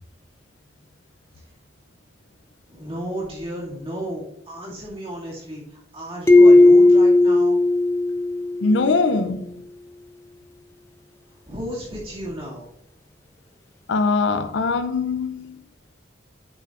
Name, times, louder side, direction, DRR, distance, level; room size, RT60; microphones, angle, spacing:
voice 1, 2.7-7.6 11.5-12.7, equal, 30° right, 2.2 m, -33 dB
sound 1, 6.3-8.8, left 2 dB, 15° left, 0.5 m, -14 dB
voice 2, 8.6-9.5 13.9-15.6, left 3 dB, 75° left, 0.5 m, -22 dB
9.0 x 6.8 x 2.5 m
head